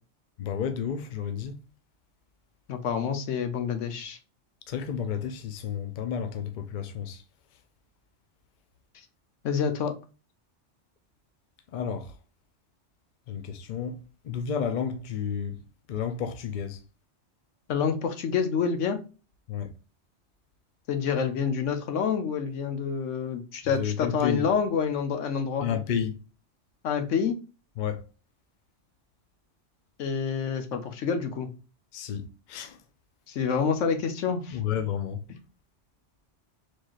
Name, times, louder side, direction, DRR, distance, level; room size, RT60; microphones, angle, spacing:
voice 1, 0.4-1.5 4.7-7.2 11.7-12.1 13.3-14.0 14.2-15.6 15.9-16.8 19.5-19.7 23.8-24.4 25.6-26.2 27.8-28.0 31.9-32.8 34.5-35.2, left 7 dB, 50° left, 0.6 m, -31 dB
voice 2, 2.7-4.2 9.4-9.9 17.7-19.0 20.9-25.7 26.8-27.4 30.0-31.5 33.3-34.6, left 6 dB, 85° left, 1.1 m, -27 dB
4.4 x 3.1 x 2.4 m
omnidirectional pair, 1.2 m